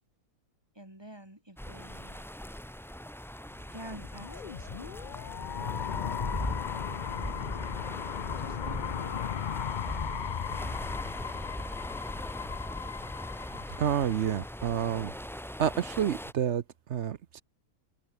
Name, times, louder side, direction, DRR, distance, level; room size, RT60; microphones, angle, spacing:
voice 1, 0.8-2.3 3.7-4.9 5.6-7.8 8.4-9.6, right 1 dB, 15° right, 5.3 m, -49 dB
sound 1, 1.6-16.3, equal, 5° left, 0.4 m, -40 dB
sound 2, 3.8-14.7, left 8 dB, 70° left, 0.4 m, -37 dB
voice 2, 13.8-15.1 15.6-16.6 16.9-17.4, right 9 dB, 55° right, 0.9 m, -29 dB
omnidirectional pair, 1.7 m